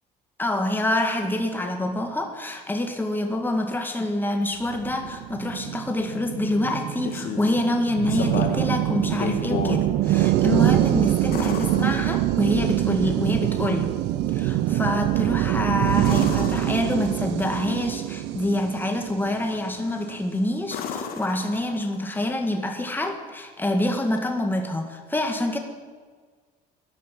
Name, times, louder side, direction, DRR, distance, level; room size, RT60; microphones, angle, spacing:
voice 1, 0.4-14.0 14.3-25.6, left 1 dB, 10° left, 4 dB, 2.0 m, -26 dB
sound 1, 4.7-20.1, right 13 dB, 85° right, 0.7 m, -24 dB
sound 2, 6.8-7.6 8.1-8.7 9.1-9.8 11.3-12.6 16.0-17.3 19.8-20.2 20.7-22.1 24.2-24.3, left 6 dB, 65° left, 2.1 m, -33 dB
13.5 x 11.0 x 8.5 m, 1.5 s
cardioid pair, 110°, 17 cm